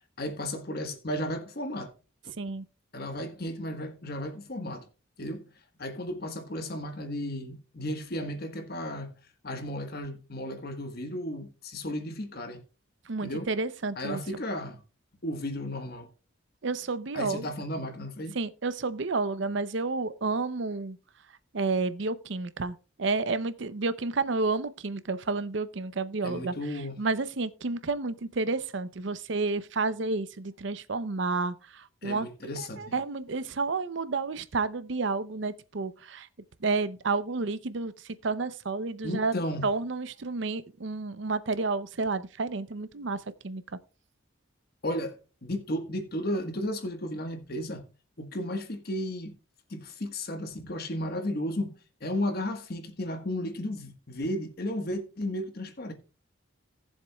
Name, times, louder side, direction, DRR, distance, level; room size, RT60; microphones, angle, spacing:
voice 1, 0.2-1.9 2.9-4.8 5.2-5.5 5.8-9.1 9.4-12.6 13.2-13.5 14.0-14.8 15.2-16.1 17.1-18.4 26.2-27.0 32.0-32.9 39.0-39.7 44.8-47.8 48.2-49.3 49.7-55.9, left 1 dB, 50° left, 1.4 m, -34 dB
voice 2, 13.1-14.2 16.6-17.5 18.3-21.0 21.5-26.5 27.0-32.3 32.6-36.3 36.6-39.3 39.6-43.6, right 3 dB, 60° right, 0.6 m, -30 dB
18.0 x 7.3 x 2.3 m
head